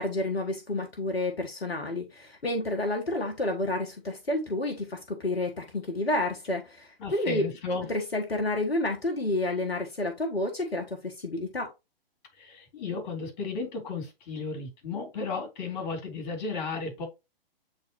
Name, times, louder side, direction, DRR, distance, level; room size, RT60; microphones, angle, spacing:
voice 1, 0.0-7.4 7.9-11.7, left 1 dB, 90° left, 1.4 m, -30 dB
voice 2, 7.0-7.9 12.4-17.1, left 4 dB, 45° left, 3.5 m, -34 dB
8.1 x 4.0 x 2.9 m
figure-of-eight pair, 125°, 30 cm